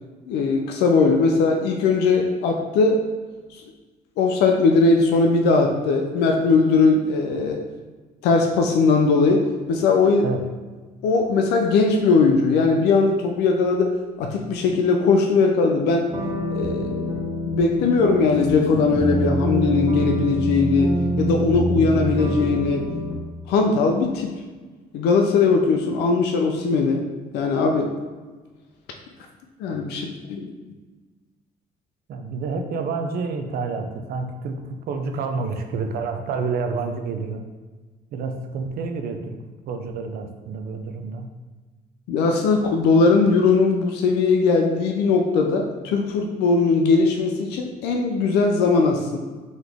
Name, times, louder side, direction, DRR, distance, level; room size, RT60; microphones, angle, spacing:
voice 1, 0.3-3.1 3.5-3.6 4.2-7.6 8.2-10.3 11.0-16.1 16.5-17.1 17.5-20.9 21.2-22.9 23.5-24.3 24.9-27.0 27.3-27.9 29.6-30.5 42.1-49.2, left 4 dB, 85° left, 3 dB, 0.5 m, -19 dB
sound 1, 16.1-23.1, right 1 dB, 30° right, 1.0 m, -25 dB
voice 2, 32.1-37.4 38.1-39.4 39.7-41.3, right 4 dB, 65° right, 6 dB, 0.5 m, -29 dB
4.0 x 3.1 x 3.4 m, 1.3 s
cardioid pair, 110°, 17 cm